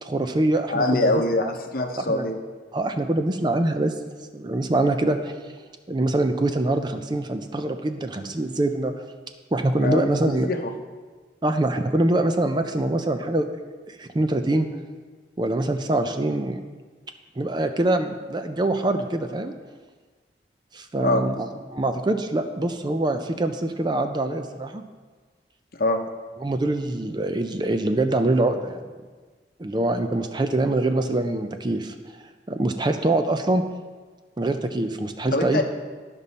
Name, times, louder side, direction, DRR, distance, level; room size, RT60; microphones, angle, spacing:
voice 1, 0.0-1.1 1.4-1.5 2.0-2.3 2.7-3.9 4.3-5.3 5.9-8.9 9.5-10.5 11.4-13.5 13.9-14.7 15.4-16.6 17.4-19.5 20.7-24.8 26.4-28.9 29.6-31.9 32.5-33.6 34.4-35.6, right 2 dB, 25° right, 7 dB, 0.4 m, -24 dB
voice 2, 0.7-2.4 9.8-10.6 21.0-21.2 25.8-26.0 35.3-35.6, left 2 dB, 55° left, 4 dB, 0.8 m, -23 dB
12.5 x 5.3 x 4.1 m, 1.4 s
head